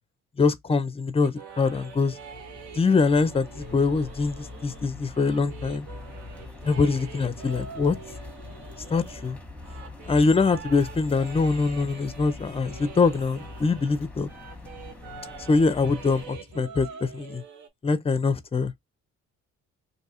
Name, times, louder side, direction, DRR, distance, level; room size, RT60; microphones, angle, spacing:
voice 1, 0.4-2.1 2.8-5.9 6.6-8.0 8.9-9.4 10.1-14.3 15.5-17.4 17.8-18.7, left 4 dB, 20° left, 0.5 m, -23 dB
sound 1, 1.2-14.0 14.3-17.7, right 6 dB, 70° right, 0.8 m, -45 dB
sound 2, 1.5-16.3, left 3 dB, 5° left, 0.9 m, -43 dB
2.7 x 2.3 x 4.1 m
cardioid pair, 90°, 30 cm